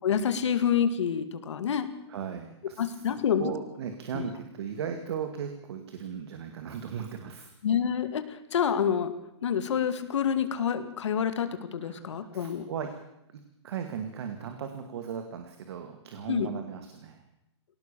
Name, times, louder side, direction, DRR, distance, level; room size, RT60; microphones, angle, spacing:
voice 1, 0.0-1.9 2.8-3.5 4.1-4.2 7.6-8.2 8.5-9.1 9.4-12.7 16.3-16.5, left 8 dB, 75° left, 10 dB, 2.3 m, -27 dB
voice 2, 2.1-3.0 3.4-7.5 11.8-13.0 13.3-17.2, right 7 dB, 60° right, 6 dB, 2.3 m, -37 dB
21.0 x 18.0 x 7.0 m, 0.85 s
hypercardioid pair, 160°, 15 cm